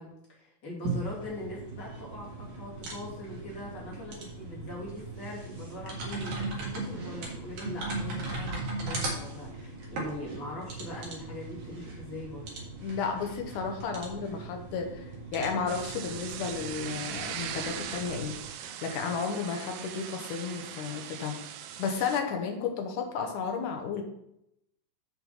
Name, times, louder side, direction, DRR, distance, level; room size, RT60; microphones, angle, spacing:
voice 1, 0.0-12.5, left 1 dB, 30° left, -5 dB, 3.1 m, -41 dB
sound 1, 0.8-18.4, right 2 dB, 50° right, 2.9 m, -38 dB
voice 2, 12.8-18.4 18.8-21.5 21.8-24.0, left 5 dB, 65° left, 4 dB, 2.3 m, -33 dB
sound 2, 15.7-22.2, right 9 dB, 80° right, 2.5 m, -40 dB
7.3 x 5.6 x 5.7 m, 0.79 s
omnidirectional pair, 4.5 m